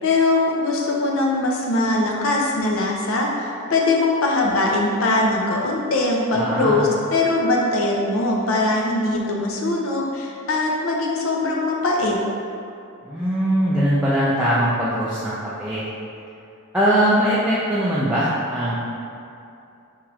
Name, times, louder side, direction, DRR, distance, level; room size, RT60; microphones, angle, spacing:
voice 1, 0.0-12.2, left 2 dB, 65° left, -2 dB, 0.6 m, -21 dB
voice 2, 6.3-6.9 13.0-15.9 16.7-18.7, equal, 5° right, -10 dB, 0.4 m, -21 dB
3.7 x 3.0 x 4.7 m, 2.6 s
head